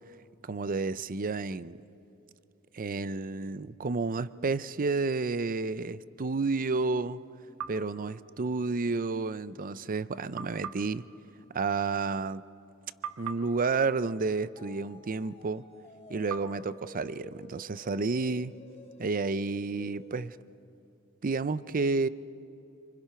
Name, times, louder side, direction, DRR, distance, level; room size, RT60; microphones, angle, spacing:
voice 1, 0.4-1.8 2.7-7.2 7.7-11.0 11.5-12.4 13.2-15.6 16.1-18.5 19.0-20.4 21.2-22.1, right 4 dB, 40° right, 16 dB, 0.5 m, -31 dB
sound 1, 7.6-9.0 10.4-12.7 13.0-15.3 16.3-18.2, right 8 dB, 75° right, 1.2 m, -45 dB
sound 2, 13.6-20.3, left 3 dB, 30° left, 1.2 m, -52 dB
27.0 x 26.0 x 5.8 m, 2.9 s
head